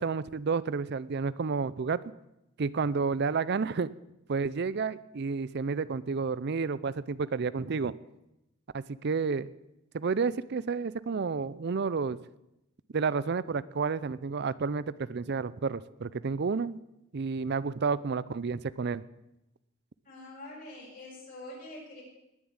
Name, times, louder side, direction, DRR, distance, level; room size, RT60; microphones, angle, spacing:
voice 1, 0.0-2.0 2.6-3.9 4.3-7.9 8.7-9.5 9.9-12.2 12.9-16.8 17.1-19.0, right 5 dB, 55° right, 18 dB, 0.5 m, -30 dB
voice 2, 20.0-22.0, left 1 dB, 45° left, -4 dB, 7.5 m, -45 dB
20.0 x 7.3 x 8.8 m, 0.89 s
head